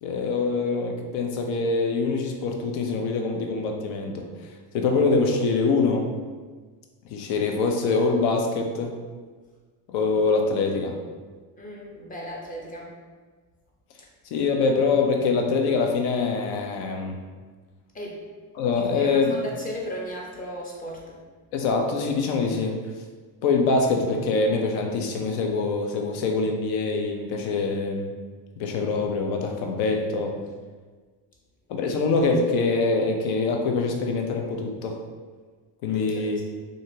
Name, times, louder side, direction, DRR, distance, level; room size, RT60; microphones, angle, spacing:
voice 1, 0.0-4.3 4.7-6.1 7.1-9.0 9.9-11.0 14.3-17.2 18.6-19.4 21.5-22.8 23.4-28.1 28.6-30.4 31.7-35.0 35.8-36.4, left 4 dB, 75° left, 3 dB, 0.6 m, -24 dB
voice 2, 11.6-12.9 17.9-18.2 18.7-21.2 35.9-36.4, equal, 20° left, -2 dB, 0.6 m, -36 dB
2.8 x 2.5 x 2.7 m, 1.4 s
cardioid pair, 115°, 46 cm